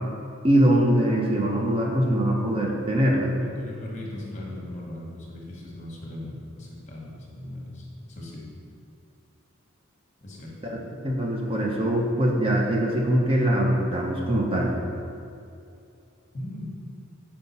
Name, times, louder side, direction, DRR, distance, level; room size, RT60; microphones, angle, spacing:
voice 1, 0.4-3.3 10.6-14.7, right 1 dB, 25° right, -1 dB, 0.5 m, -22 dB
voice 2, 3.3-8.4 10.2-10.5 16.3-16.7, left 1 dB, 35° left, -3 dB, 1.1 m, -38 dB
5.4 x 4.4 x 4.1 m, 2.6 s
head